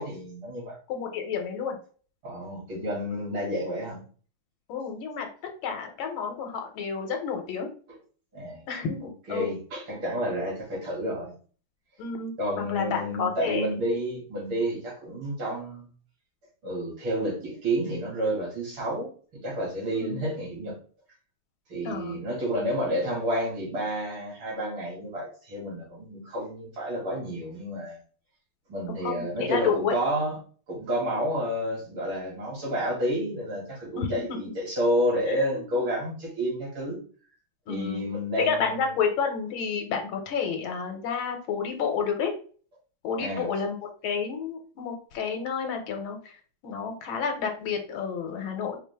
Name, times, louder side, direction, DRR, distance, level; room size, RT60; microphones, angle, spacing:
voice 1, 0.0-0.8 2.2-4.0 8.3-8.6 9.3-11.3 12.4-15.9 16.6-20.7 21.7-28.0 28.7-30.4 30.7-37.0 37.7-38.7 43.2-43.5, equal, 70° right, -3 dB, 2.9 m, -30 dB
voice 2, 0.9-1.8 4.7-5.3 5.6-7.7 8.7-9.5 12.0-13.7 19.9-20.3 21.8-22.2 29.0-29.9 33.9-34.2 35.3-35.9 37.7-38.1 38.4-42.3 43.0-48.8, left 6 dB, 75° left, 4 dB, 1.6 m, -30 dB
5.0 x 2.5 x 3.4 m, 0.42 s
omnidirectional pair, 2.3 m